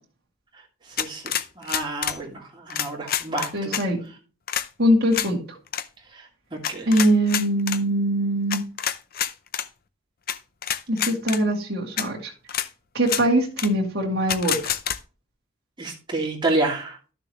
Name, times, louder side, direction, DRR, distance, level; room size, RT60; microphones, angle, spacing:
sound 1, 1.0-2.2 2.7-3.8 4.5-4.7 5.1-5.3 5.7-5.8 6.6-7.8 8.5-9.7 10.3-10.4 10.6-11.4 12.0-12.1 12.5-12.7 13.0-13.2 13.6-13.7 14.3-15.0, left 10 dB, 45° left, 0.6 m, -27 dB
voice 1, 1.6-3.7 6.1-6.9 15.8-17.0, right 2 dB, 20° right, -2 dB, 2.5 m, -29 dB
voice 2, 3.5-4.0 4.8-5.4 6.9-8.6 10.9-12.3 12.9-14.7, right 1 dB, 50° right, -2 dB, 2.2 m, -22 dB
12.0 x 6.7 x 3.1 m, 0.35 s
head